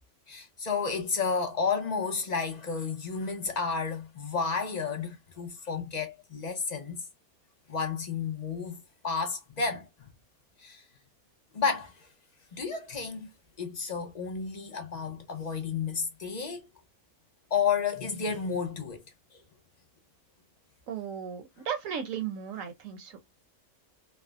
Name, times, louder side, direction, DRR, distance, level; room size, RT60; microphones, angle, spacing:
voice 1, 0.3-7.0 7.7-9.9 10.6-10.8 11.5-12.1 12.5-13.3 13.6-16.7 17.5-19.0, left 5 dB, 45° left, 0.5 m, -31 dB
voice 2, 20.9-23.1, right 8 dB, 65° right, 1.1 m, -35 dB
3.2 x 2.0 x 2.3 m
omnidirectional pair, 1.6 m